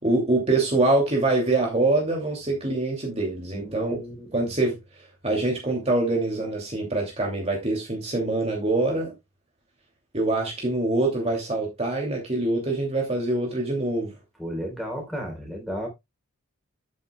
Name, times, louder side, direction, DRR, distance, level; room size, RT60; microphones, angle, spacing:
voice 1, 0.0-4.0 4.3-4.8 5.2-9.1 10.1-14.1, right 2 dB, 30° right, 2.7 m, -24 dB
voice 2, 3.5-4.5 14.4-15.9, equal, ahead, 3.9 m, -34 dB
10.0 x 9.1 x 2.3 m
head